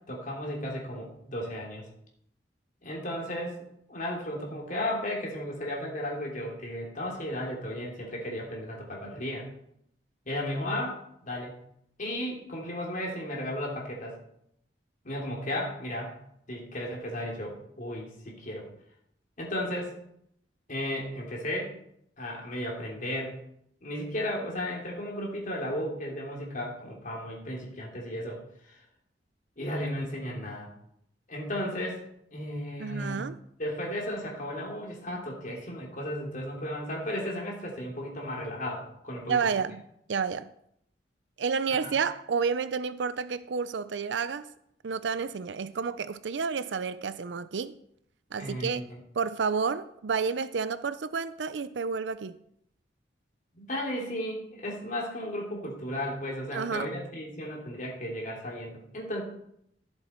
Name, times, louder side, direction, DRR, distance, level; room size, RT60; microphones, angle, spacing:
voice 1, 0.1-1.9 2.8-3.6 3.9-9.5 10.3-11.5 12.0-14.2 15.0-16.1 16.5-18.7 19.4-19.9 20.7-21.7 22.2-23.4 23.8-28.8 29.6-30.7 31.3-32.0 32.3-33.2 33.6-39.5 41.7-41.9 48.4-49.0 53.5-59.2, left 1 dB, 50° left, 3.2 m, -34 dB
voice 2, 32.8-33.4 39.3-39.8 40.1-40.5 41.4-44.5 44.8-47.7 48.3-48.8 49.2-52.4 56.5-56.9, right 5 dB, 85° right, 0.5 m, -30 dB
16.5 x 7.7 x 4.5 m
head